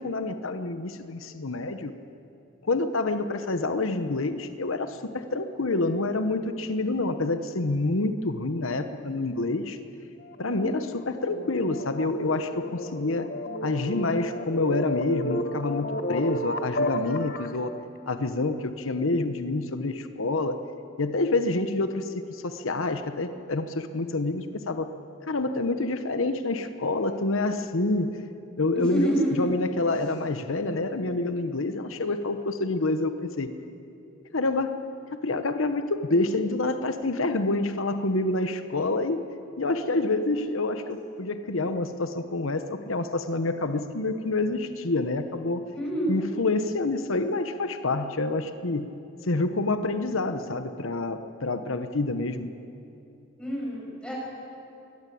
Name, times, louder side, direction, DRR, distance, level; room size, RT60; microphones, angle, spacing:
voice 1, 0.0-1.9 2.6-9.8 10.4-13.3 13.6-17.7 18.1-20.6 21.0-24.9 25.3-28.2 28.6-33.5 34.3-34.8 35.2-39.2 39.6-45.6 46.1-48.9 49.2-52.5, left 2 dB, 85° left, 9 dB, 1.0 m, -27 dB
sound 1, 10.2-17.6, left 1 dB, 50° left, 1.5 m, -32 dB
voice 2, 28.9-29.5 45.7-46.3 53.4-54.1, equal, 5° left, -5 dB, 7.6 m, -28 dB
22.5 x 18.5 x 8.5 m, 2.9 s
head